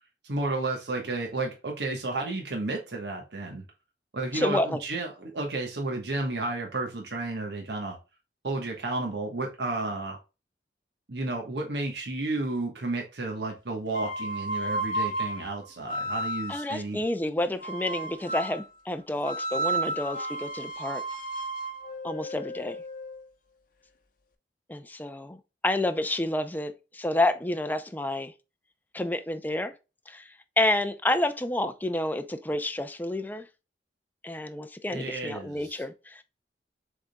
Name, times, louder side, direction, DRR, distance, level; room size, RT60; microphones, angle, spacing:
voice 1, 0.2-3.6 4.1-8.0 8.4-10.2 11.1-17.0 34.9-35.8, right 2 dB, 65° right, 1.1 m, -32 dB
voice 2, 4.3-4.8 16.5-21.0 22.0-22.8 24.7-25.4 25.6-28.3 28.9-29.7 30.1-30.3 30.6-33.5 34.2-36.2, left 1 dB, 10° left, 0.5 m, -29 dB
sound 1, 13.9-16.7 17.6-18.6 19.2-23.2, right 2 dB, 50° left, 0.8 m, -33 dB
6.6 x 3.6 x 2.2 m
head